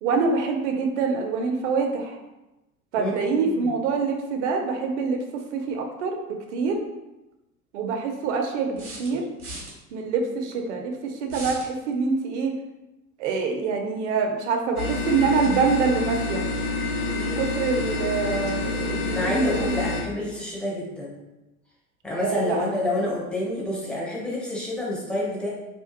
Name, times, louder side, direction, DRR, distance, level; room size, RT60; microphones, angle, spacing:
voice 1, 0.0-2.2 2.9-6.8 7.7-9.2 9.9-12.5 13.2-16.4 17.1-19.8 22.2-22.8, right 4 dB, 55° right, 3 dB, 0.5 m, -25 dB
voice 2, 2.9-3.7 19.1-21.2 22.0-25.5, left 1 dB, ahead, -5 dB, 0.4 m, -28 dB
sound 1, 8.8-9.7 11.3-11.7, right 1 dB, 75° right, 1.0 m, -37 dB
sound 2, 14.8-20.0, left 3 dB, 90° left, 0.6 m, -27 dB
2.8 x 2.2 x 2.5 m, 1.0 s
figure-of-eight pair, 75°, 44 cm